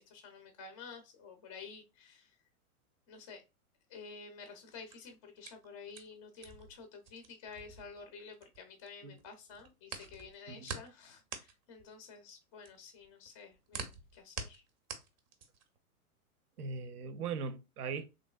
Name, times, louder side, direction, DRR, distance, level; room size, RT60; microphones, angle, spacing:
voice 1, 0.0-2.4 3.1-3.4 3.9-14.6, left 5 dB, 25° left, 0.3 m, -51 dB
sound 1, 4.7-8.9 9.2-15.8, right 5 dB, 30° right, 0.5 m, -46 dB
voice 2, 16.6-18.0, right 5 dB, 90° right, 0.6 m, -39 dB
3.1 x 2.6 x 2.2 m
hypercardioid pair, 130°, 44 cm